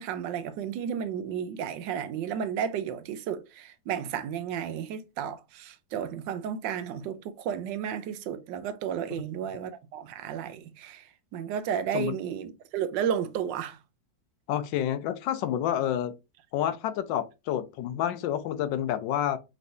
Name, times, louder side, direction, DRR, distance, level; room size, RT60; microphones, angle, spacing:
voice 1, 0.0-11.1 11.3-13.8, right 8 dB, 85° right, 1.3 m, -33 dB
voice 2, 14.5-16.1 16.5-19.4, left 11 dB, 90° left, 1.3 m, -29 dB
5.2 x 3.1 x 2.6 m
omnidirectional pair, 1.9 m